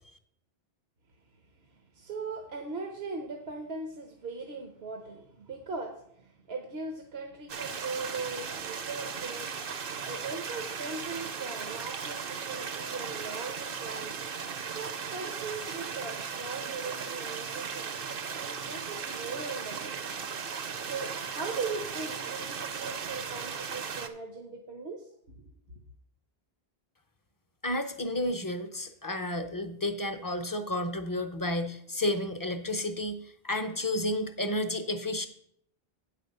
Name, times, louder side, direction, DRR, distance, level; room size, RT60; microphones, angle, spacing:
voice 1, 1.7-14.2 14.7-18.1 18.3-20.2 20.8-25.1 25.4-25.6, right 4 dB, 80° right, 3 dB, 1.2 m, -39 dB
sound 1, 7.5-24.1, right 6 dB, 65° right, 0.9 m, -37 dB
voice 2, 27.6-35.3, left 1 dB, 25° left, 7 dB, 0.5 m, -31 dB
8.8 x 4.9 x 6.6 m, 0.69 s
omnidirectional pair, 1.0 m